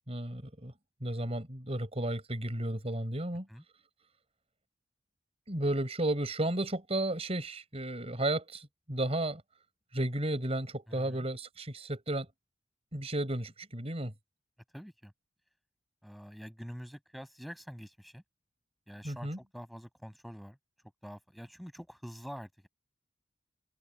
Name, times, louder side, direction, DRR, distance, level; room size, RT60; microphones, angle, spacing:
voice 1, 0.1-0.7 1.0-3.5 5.5-9.4 9.9-12.3 12.9-14.1 19.0-19.4, right 1 dB, 35° right, 5.3 m, -33 dB
voice 2, 10.9-11.3 14.7-15.1 16.0-18.2 18.9-20.6 21.0-22.7, equal, ahead, 7.4 m, -46 dB
open air
head